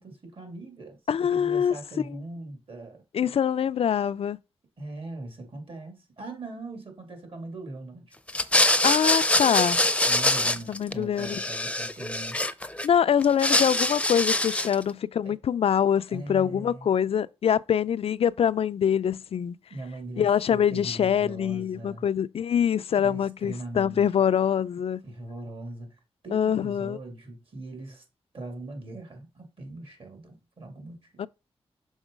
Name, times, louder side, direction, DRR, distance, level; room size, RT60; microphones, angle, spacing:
voice 1, 0.0-1.0 1.3-3.0 4.8-8.1 10.0-12.4 15.2-15.3 16.1-16.9 19.7-22.1 22.9-24.1 25.0-26.0 26.2-28.0 28.3-31.3, right 2 dB, 60° right, 2.5 m, -40 dB
voice 2, 1.1-1.7 3.1-4.4 8.8-9.8 10.7-11.4 12.8-19.6 20.2-25.0 26.3-27.0 31.2-31.3, left 8 dB, 70° left, 0.4 m, -24 dB
sound 1, 8.3-10.9 11.2-12.9 13.2-14.8, left 1 dB, 10° left, 0.6 m, -24 dB
6.3 x 3.8 x 5.0 m
cardioid pair, 60°, 11 cm